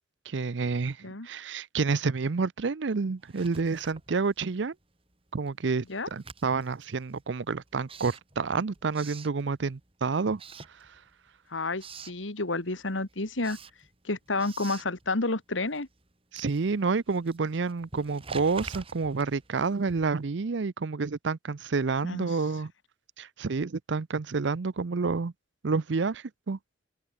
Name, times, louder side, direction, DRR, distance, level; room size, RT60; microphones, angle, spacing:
voice 1, 0.3-1.0 1.2-4.7 5.3-5.9 6.1-10.4 16.3-22.7 23.2-25.3 25.6-26.6, right 4 dB, 70° right, 0.6 m, -29 dB
Writing, 3.2-4.8 5.1-9.9 10.3-11.3 11.6-12.2 12.7-20.3, right 4 dB, 30° right, 3.3 m, -48 dB
voice 2, 11.5-13.6 14.0-15.9 22.0-22.3, left 2 dB, 90° left, 2.3 m, -30 dB
open air
head